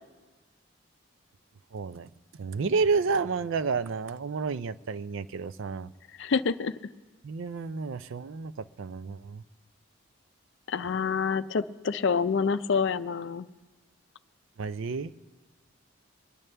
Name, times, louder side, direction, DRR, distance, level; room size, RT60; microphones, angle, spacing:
voice 1, 1.7-2.1 2.4-5.9 7.2-9.4 14.6-15.1, right 4 dB, 70° right, 14 dB, 0.4 m, -30 dB
voice 2, 6.2-6.7 10.7-13.5, left 5 dB, 60° left, 13 dB, 0.4 m, -27 dB
24.0 x 10.5 x 3.3 m, 1.3 s
head